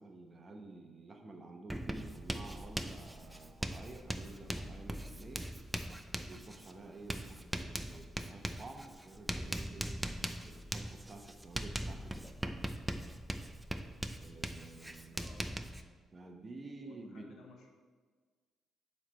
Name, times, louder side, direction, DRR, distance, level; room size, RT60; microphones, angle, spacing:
voice 1, 0.0-5.5 6.2-9.9 10.4-12.6 14.2-15.3 16.1-17.3, right 2 dB, 30° right, 3 dB, 0.9 m, -51 dB
Writing, 1.7-15.8, right 1 dB, 10° right, 0.4 m, -41 dB
voice 2, 15.1-15.6 16.8-17.8, left 3 dB, 70° left, 1 dB, 1.1 m, -57 dB
7.2 x 3.3 x 6.2 m, 1.5 s
cardioid pair, 90°, 0 cm